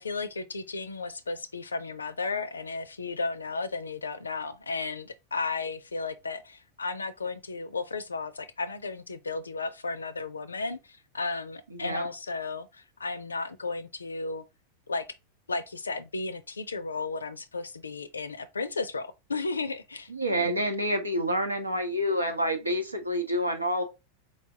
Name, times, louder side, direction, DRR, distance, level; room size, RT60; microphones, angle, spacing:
voice 1, 0.0-14.4 14.9-15.1 15.5-20.1, left 3 dB, 75° left, 0.4 m, -34 dB
voice 2, 11.7-12.1 20.1-23.8, equal, 80° right, 0.8 m, -28 dB
4.3 x 3.3 x 2.7 m
figure-of-eight pair, 90°, 0 cm